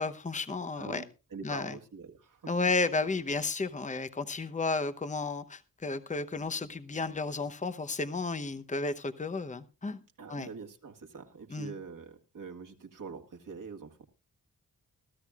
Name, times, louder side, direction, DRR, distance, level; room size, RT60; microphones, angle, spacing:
voice 1, 0.0-1.0 1.4-1.7 2.5-10.0 10.3-10.5 11.5-11.7, left 3 dB, 20° left, 10 dB, 0.9 m, -32 dB
voice 2, 0.8-2.5 10.2-14.1, right 5 dB, 65° right, 3 dB, 1.8 m, -44 dB
21.5 x 13.5 x 2.4 m, 0.30 s
cardioid pair, 75°, 35 cm